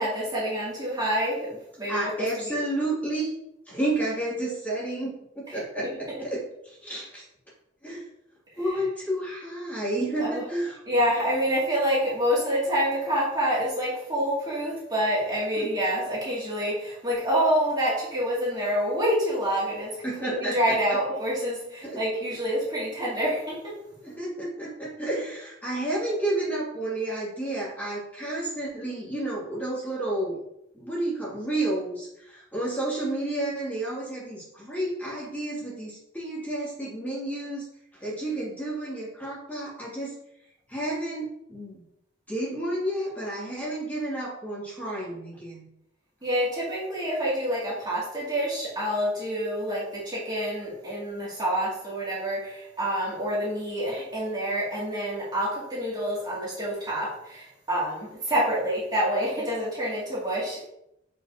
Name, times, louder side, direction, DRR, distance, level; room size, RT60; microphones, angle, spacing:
voice 1, 0.0-2.3 10.2-10.4 10.9-23.7 46.2-60.7, equal, 20° right, -7 dB, 2.7 m, -27 dB
voice 2, 1.9-3.3 3.7-7.2 7.8-8.1 8.5-10.8 15.6-15.7 20.0-20.8 21.8-22.0 24.0-30.4 30.7-37.6 37.9-40.1 40.7-41.8 42.3-45.6, right 1 dB, 10° left, -8 dB, 2.8 m, -31 dB
7.7 x 5.7 x 3.0 m, 0.80 s
head